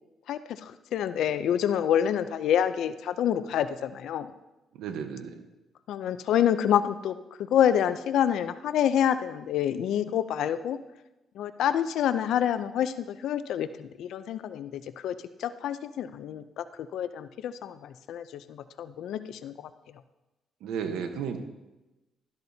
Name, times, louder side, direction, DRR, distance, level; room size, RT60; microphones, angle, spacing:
voice 1, 0.3-4.3 5.9-10.8 11.4-19.7, left 9 dB, 80° left, 12 dB, 0.5 m, -27 dB
voice 2, 4.7-5.4 20.6-21.4, right 7 dB, 90° right, 7 dB, 1.0 m, -33 dB
12.5 x 12.0 x 2.8 m, 1.0 s
cardioid pair, 90°, 0 cm